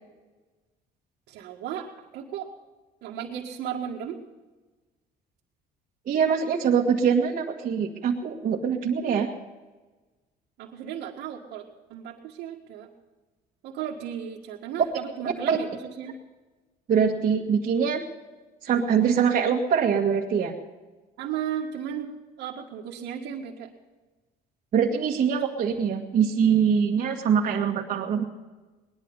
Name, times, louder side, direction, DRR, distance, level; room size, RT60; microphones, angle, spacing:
voice 1, 1.3-2.5 3.0-4.2 10.6-12.9 13.6-16.2 21.2-22.1 22.4-23.7 25.2-25.4, right 9 dB, 85° right, -4 dB, 1.9 m, -35 dB
voice 2, 6.1-9.3 15.5-15.6 16.9-18.0 18.6-20.5 24.7-28.3, right 7 dB, 50° right, -3 dB, 1.8 m, -23 dB
19.5 x 12.0 x 5.5 m, 1.2 s
cardioid pair, 110°, 17 cm